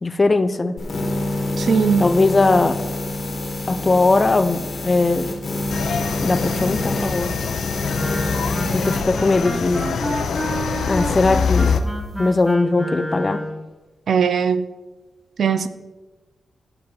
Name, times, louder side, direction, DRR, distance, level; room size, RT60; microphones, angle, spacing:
voice 1, 0.0-0.8 2.0-2.8 3.7-5.3 6.2-7.3 8.7-9.9 10.9-11.8 12.2-13.5, left 3 dB, 20° left, 12 dB, 0.4 m, -19 dB
sound 1, 0.8-9.0, left 2 dB, 40° left, 1.3 m, -27 dB
voice 2, 1.6-2.1 14.1-14.7 15.4-15.7, right 6 dB, 55° right, 12 dB, 0.5 m, -19 dB
sound 2, 5.7-11.8, left 6 dB, 70° left, 0.6 m, -25 dB
Wind instrument woodwind instrument, 7.9-13.7, equal, 10° right, 1.1 m, -29 dB
14.0 x 6.8 x 4.0 m, 1.2 s
wide cardioid pair, 170°, 0 cm